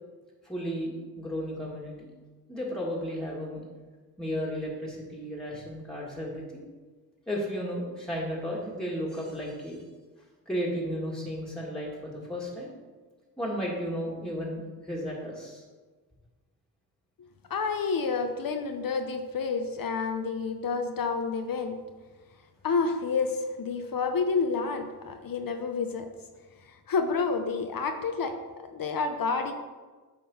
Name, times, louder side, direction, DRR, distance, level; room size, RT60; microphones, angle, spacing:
voice 1, 0.4-2.1 2.5-3.6 4.2-6.6 7.3-9.8 10.5-12.7 13.4-15.6, equal, ahead, -4 dB, 1.9 m, -34 dB
voice 2, 17.5-21.8 22.6-26.1 26.7-28.4 28.7-29.5, left 4 dB, 60° left, 6 dB, 0.7 m, -29 dB
8.5 x 3.8 x 5.6 m, 1.4 s
cardioid pair, 75°, 38 cm